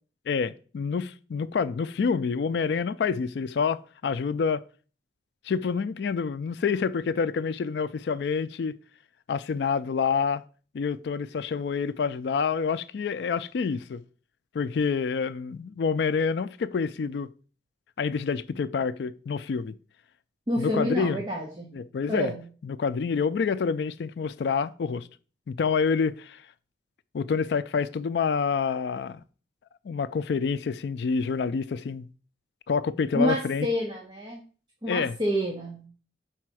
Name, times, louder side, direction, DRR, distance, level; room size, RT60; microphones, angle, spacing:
voice 1, 0.3-4.6 5.4-8.8 9.3-10.4 10.7-14.0 14.5-17.3 18.0-19.8 20.6-21.2 21.7-22.3 22.6-25.1 25.5-26.4 27.1-29.2 29.8-32.1 32.7-33.7 34.9-35.2, left 5 dB, 65° left, 0.3 m, -27 dB
voice 2, 20.5-21.7 22.1-22.4 33.1-34.4 34.8-35.9, equal, 25° right, 1.1 m, -28 dB
5.5 x 4.2 x 6.1 m
head